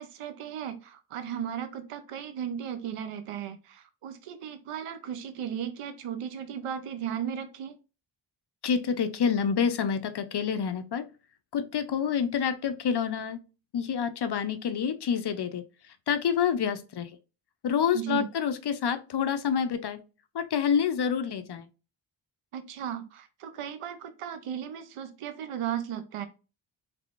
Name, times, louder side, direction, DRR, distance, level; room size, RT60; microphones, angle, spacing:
voice 1, 0.0-7.8 17.9-18.3 22.5-26.3, right 9 dB, 85° right, 9 dB, 0.6 m, -36 dB
voice 2, 8.6-11.1 11.5-13.4 13.7-15.6 16.1-17.1 17.6-20.0 20.3-21.7, left 7 dB, 55° left, 10 dB, 0.5 m, -27 dB
3.4 x 3.2 x 2.4 m, 0.32 s
cardioid pair, 70°, 50 cm